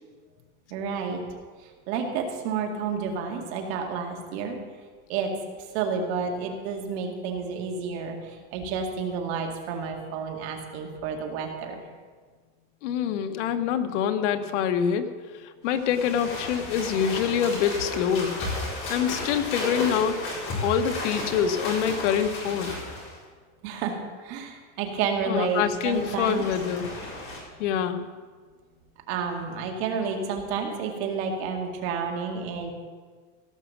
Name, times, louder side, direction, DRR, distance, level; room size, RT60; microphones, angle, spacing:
voice 1, 0.7-1.2 1.6-4.6 5.1-5.3 5.6-11.8 23.6-26.5 29.1-32.7, right 5 dB, 60° right, 2 dB, 2.3 m, -30 dB
voice 2, 12.8-15.1 15.6-18.4 18.9-20.3 20.6-22.7 25.3-26.9 27.6-28.0, left 8 dB, 90° left, 7 dB, 1.1 m, -25 dB
sound 1, 15.7-23.2 25.5-27.4, left 2 dB, 35° left, 4.5 m, -34 dB
16.5 x 6.1 x 7.2 m, 1.5 s
supercardioid pair, 160°, 35 cm